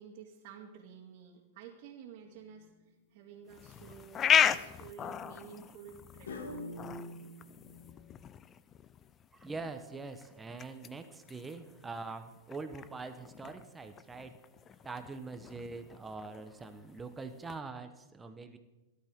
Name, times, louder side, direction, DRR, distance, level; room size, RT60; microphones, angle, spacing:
voice 1, 0.0-2.7 3.1-6.3, right 7 dB, 50° right, -3 dB, 2.2 m, -51 dB
sound 1, 2.4-2.8 3.5-4.0 6.3-8.2, left 1 dB, 90° left, 2.3 m, -45 dB
sound 2, 3.5-17.6, left 8 dB, 25° left, 0.5 m, -36 dB
voice 2, 9.3-14.3 14.8-18.6, right 3 dB, 10° right, 8 dB, 1.1 m, -43 dB
18.0 x 12.0 x 3.7 m, 1.1 s
hypercardioid pair, 135°, 0 cm